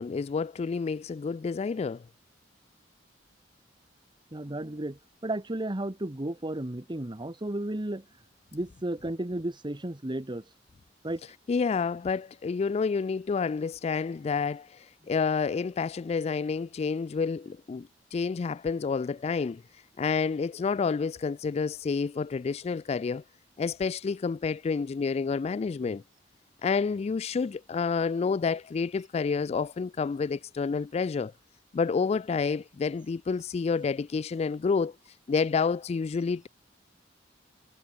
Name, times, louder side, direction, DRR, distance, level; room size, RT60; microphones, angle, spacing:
voice 1, 0.0-2.0 11.5-19.6 20.0-23.2 23.6-26.0 26.6-31.3 31.7-35.0 35.3-36.5, left 5 dB, 35° left, 0.3 m, -29 dB
voice 2, 4.3-8.1 8.5-10.4 11.0-11.2, right 1 dB, 25° right, 1.2 m, -33 dB
head